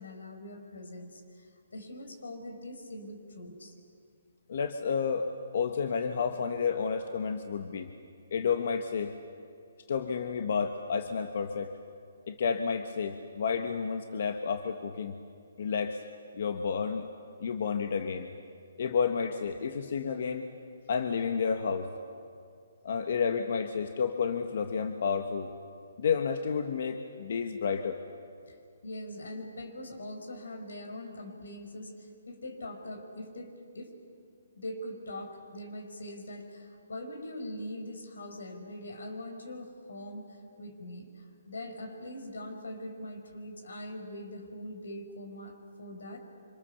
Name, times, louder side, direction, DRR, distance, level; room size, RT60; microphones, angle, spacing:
voice 1, 0.0-3.7 28.5-28.6 28.8-33.9 34.6-46.2, left 1 dB, 90° left, 5 dB, 5.3 m, -42 dB
voice 2, 4.5-7.9 8.3-9.1 9.9-11.7 12.3-15.1 15.6-16.0 16.3-17.0 17.4-18.3 18.8-20.5 20.9-21.9 22.8-25.5 26.0-28.0, left 6 dB, 50° left, 6 dB, 1.3 m, -31 dB
27.0 x 26.0 x 7.1 m, 2.4 s
hypercardioid pair, 170°, 0 cm